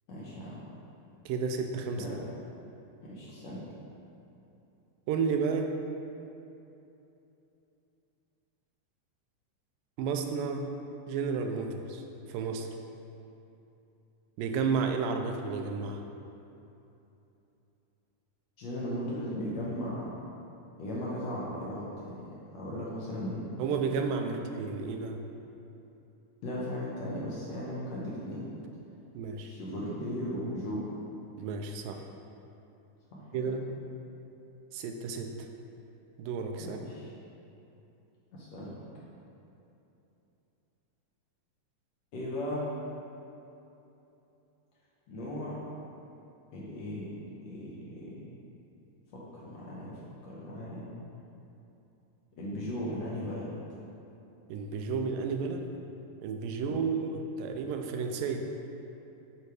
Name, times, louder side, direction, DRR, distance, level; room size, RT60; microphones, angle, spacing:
voice 1, 0.1-0.6 2.0-2.2 3.0-3.6 18.6-20.1 20.8-22.2 22.5-23.5 26.4-28.5 29.4-30.8 33.1-33.6 36.6-37.1 38.3-38.8 42.1-42.7 45.1-45.6 46.5-48.2 49.1-50.9 52.4-53.5 56.6-56.8, equal, 65° left, -6 dB, 1.8 m, -37 dB
voice 2, 1.3-2.1 5.1-5.7 10.0-10.7 11.1-12.0 12.3-12.7 14.4-16.0 23.6-25.2 29.1-29.5 31.4-32.0 33.3-33.6 34.7-35.5 36.2-36.9 54.5-55.7 56.2-58.4, right 5 dB, 85° right, 4 dB, 2.3 m, -32 dB
9.4 x 3.4 x 4.8 m, 2.9 s
omnidirectional pair, 3.9 m